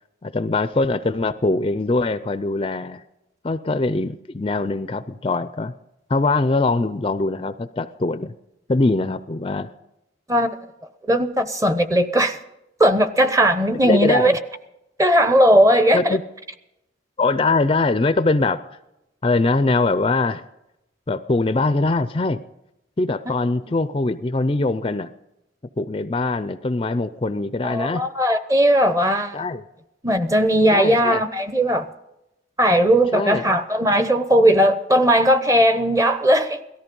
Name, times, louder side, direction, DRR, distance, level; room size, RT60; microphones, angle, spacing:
voice 1, 0.2-3.0 3.4-5.7 6.1-8.3 8.7-9.7 13.8-14.4 15.9-16.2 17.2-18.6 19.2-20.4 21.1-22.4 23.0-25.1 25.8-28.0 29.3-29.6 30.7-31.2 33.1-33.6, left 3 dB, 30° left, 0.4 m, -22 dB
voice 2, 11.1-12.4 12.8-14.3 15.0-16.2 27.6-29.4 30.0-31.9 32.6-36.6, equal, 15° right, 0.8 m, -17 dB
17.5 x 13.5 x 5.3 m
head